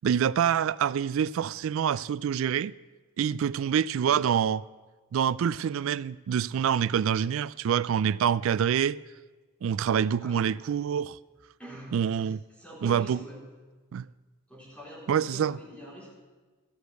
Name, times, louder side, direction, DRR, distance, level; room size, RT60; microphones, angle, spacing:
voice 1, 0.0-2.7 3.2-4.6 5.1-9.0 9.6-11.2 11.9-12.4 12.8-13.2 13.9-14.1 15.1-15.6, right 8 dB, 65° right, 0.3 m, -26 dB
voice 2, 11.6-12.1 12.5-13.4 14.5-16.1, equal, 5° left, 3.8 m, -45 dB
14.0 x 6.5 x 8.1 m
head